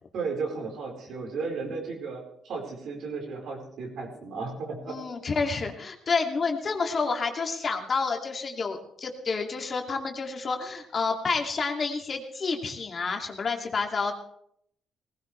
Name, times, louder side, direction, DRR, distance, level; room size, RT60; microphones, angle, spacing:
voice 1, 0.1-4.9, right 4 dB, 70° right, 1 dB, 4.6 m, -34 dB
voice 2, 4.9-14.1, left 4 dB, 45° left, 2 dB, 2.5 m, -29 dB
19.5 x 16.0 x 3.3 m, 0.69 s
cardioid pair, 90°, 0 cm